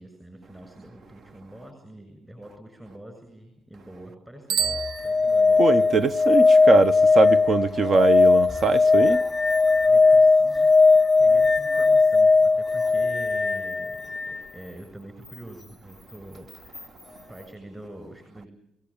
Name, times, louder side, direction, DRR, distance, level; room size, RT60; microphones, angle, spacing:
voice 1, 0.0-4.8 5.0-5.8 9.8-10.7 11.2-17.0 17.3-18.5, right 1 dB, 15° right, 7.2 m, -44 dB
Bicycle bell, 4.4-5.8, right 8 dB, 85° right, 0.9 m, -30 dB
sound 1, 4.6-14.4 16.7-16.8, left 4 dB, 15° left, 0.8 m, -19 dB
voice 2, 5.6-9.2, right 4 dB, 45° right, 0.8 m, -22 dB
24.5 x 17.5 x 8.7 m
supercardioid pair, 70°, 0 cm